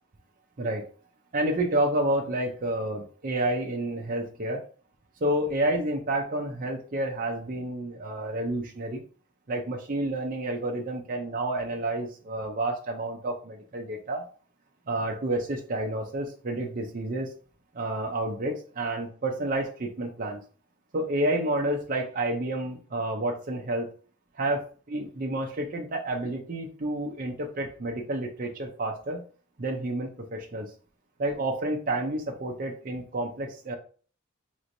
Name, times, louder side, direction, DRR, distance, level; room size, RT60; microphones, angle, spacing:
voice 1, 1.3-4.7 5.2-9.0 9.5-14.2 14.9-17.3 17.7-20.4 20.9-23.9 24.3-29.2 29.6-30.7 31.2-33.7, right 1 dB, 40° right, 0 dB, 0.6 m, -30 dB
5.0 x 3.1 x 2.6 m, 0.41 s
head